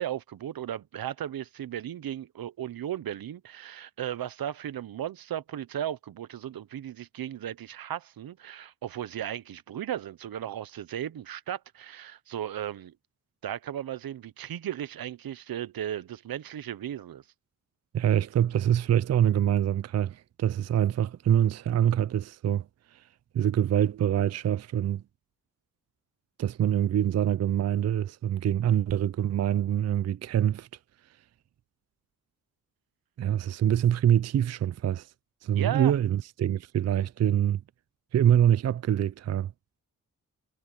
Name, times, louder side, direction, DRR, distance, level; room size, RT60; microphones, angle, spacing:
voice 1, 0.0-12.9 13.4-17.2 35.5-35.9, right 11 dB, 80° right, 0.9 m, -35 dB
voice 2, 17.9-23.0 23.3-25.0 26.4-30.7 33.2-35.1 35.4-37.6 38.1-39.5, right 10 dB, 50° right, 0.4 m, -25 dB
cardioid pair, 75°, 35 cm